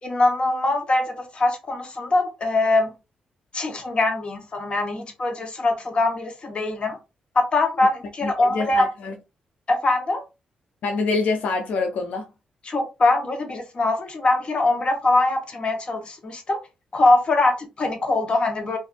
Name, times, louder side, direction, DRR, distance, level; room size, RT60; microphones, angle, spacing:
voice 1, 0.0-2.9 3.5-7.0 7.3-8.9 9.7-10.2 12.7-16.6 16.9-18.8, left 2 dB, 40° left, 0.9 m, -22 dB
voice 2, 8.2-9.1 10.8-12.2, left 3 dB, 75° left, 0.4 m, -25 dB
2.5 x 2.4 x 2.4 m
cardioid pair, 80°, 3 cm